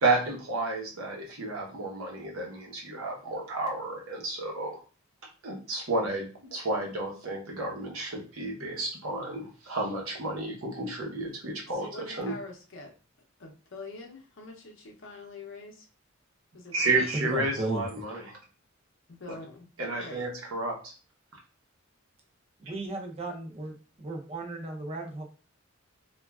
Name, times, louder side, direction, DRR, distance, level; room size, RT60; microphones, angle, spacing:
voice 1, 0.0-4.8 5.4-12.3 16.7-18.4 19.8-20.9, right 2 dB, 80° right, 0 dB, 0.8 m, -31 dB
voice 2, 11.7-12.9 13.4-15.9 16.5-17.2 19.2-19.6 20.0-20.3, left 2 dB, 60° left, 2 dB, 0.6 m, -45 dB
voice 3, 17.1-17.8 22.6-25.2, right 2 dB, 30° right, 2 dB, 0.5 m, -35 dB
3.1 x 2.3 x 2.3 m, 0.36 s
head